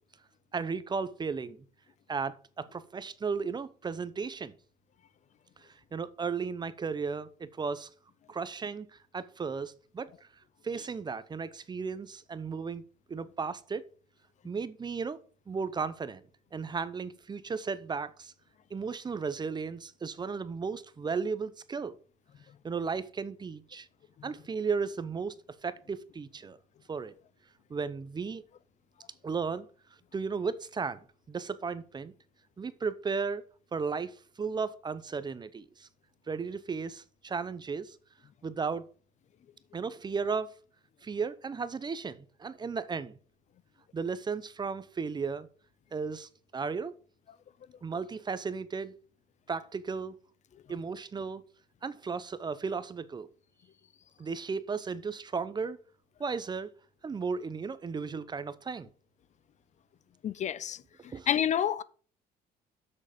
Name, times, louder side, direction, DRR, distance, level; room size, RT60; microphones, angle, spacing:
voice 1, 0.5-1.6 2.1-4.5 5.6-7.9 8.3-10.1 10.6-12.8 13.1-13.8 14.4-15.2 15.5-16.2 16.5-18.3 18.7-22.0 22.6-23.9 24.2-25.3 25.6-26.6 26.9-27.1 27.7-28.4 29.2-29.7 30.1-31.0 31.3-32.1 32.6-33.4 33.7-35.9 36.3-38.0 38.4-38.9 39.7-40.5 41.0-43.2 43.9-45.5 45.9-46.9 47.8-48.9 49.5-50.2 50.7-51.4 51.8-53.3 54.2-55.8 56.2-56.7 57.0-58.9 61.1-61.3, right 5 dB, 25° right, 0.7 m, -35 dB
voice 2, 60.2-60.8 61.3-61.8, left 9 dB, 45° left, 0.5 m, -28 dB
7.5 x 6.5 x 5.1 m
cardioid pair, 110°, 17 cm